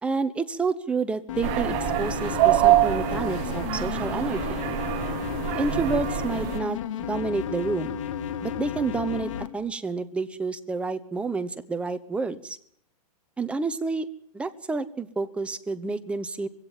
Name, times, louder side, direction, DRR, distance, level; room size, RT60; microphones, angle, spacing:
voice 1, 0.0-4.6 5.6-6.8 7.1-8.0 8.4-12.6 13.4-14.1 14.3-16.5, right 4 dB, 5° right, 10 dB, 1.0 m, -29 dB
sound 1, 1.3-9.5, left 9 dB, 55° left, 2.0 m, -32 dB
sound 2, 1.4-6.6, right 17 dB, 30° right, 1.0 m, -25 dB
22.0 x 16.5 x 9.1 m, 0.66 s
hypercardioid pair, 155°, 19 cm